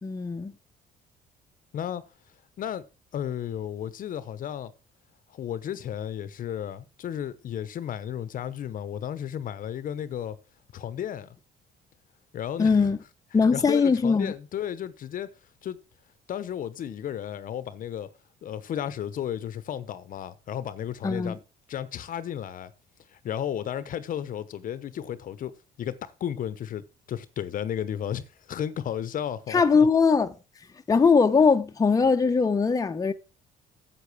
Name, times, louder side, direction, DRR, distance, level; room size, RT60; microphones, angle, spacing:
voice 1, 0.0-0.5 12.6-13.0 13.3-14.3 21.0-21.3 29.5-30.3 30.9-33.1, left 5 dB, 20° left, 0.9 m, -21 dB
voice 2, 3.1-4.7 5.3-10.4 10.7-11.4 12.3-12.9 13.5-15.3 15.6-15.8 16.3-18.1 18.4-21.4 21.7-22.7 23.1-29.9, left 10 dB, 55° left, 0.9 m, -33 dB
8.5 x 7.7 x 6.1 m
cardioid pair, 110°, 17 cm